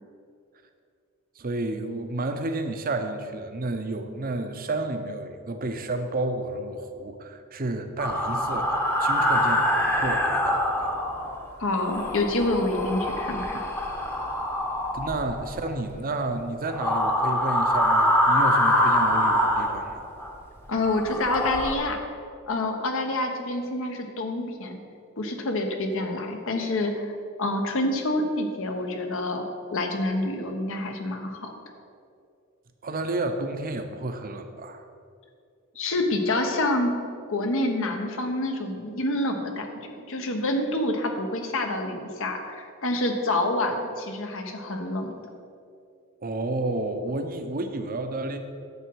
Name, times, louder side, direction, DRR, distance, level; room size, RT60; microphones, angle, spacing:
voice 1, 1.4-10.9 11.2-11.4 14.9-20.0 32.8-34.8 46.2-48.4, right 2 dB, 40° right, 7 dB, 0.7 m, -31 dB
sound 1, 8.0-11.4 11.8-15.8 16.7-20.3 20.8-21.7, left 1 dB, 10° left, 0.9 m, -24 dB
voice 2, 11.6-13.6 20.7-22.0 22.5-24.8 25.2-29.4 29.7-31.5 35.8-36.9 37.3-45.1, left 2 dB, 65° left, 4 dB, 1.0 m, -27 dB
10.0 x 7.2 x 4.7 m, 2.4 s
head